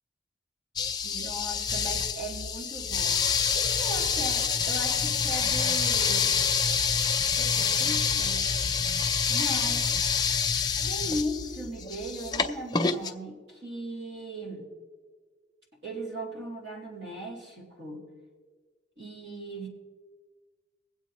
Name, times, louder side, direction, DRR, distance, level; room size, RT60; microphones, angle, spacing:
sound 1, 0.8-13.1, left 6 dB, 20° left, 0.5 m, -27 dB
voice 1, 1.0-3.2 3.5-6.3 7.4-8.5 9.3-10.0 10.8-14.7 15.8-18.0 19.0-19.7, right 1 dB, 70° right, -3 dB, 3.1 m, -37 dB
23.0 x 8.0 x 3.0 m, 1.5 s
head